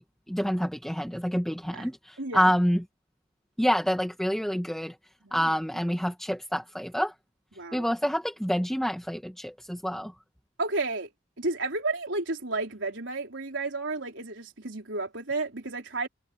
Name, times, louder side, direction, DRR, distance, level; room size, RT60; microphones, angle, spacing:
voice 1, 0.3-2.8 3.6-5.0 5.3-7.1 7.7-10.1, equal, ahead, 1.8 m, -27 dB
voice 2, 2.2-2.5 5.2-5.5 7.6-7.9 10.6-11.1 11.4-16.1, right 3 dB, 75° right, 4.4 m, -32 dB
head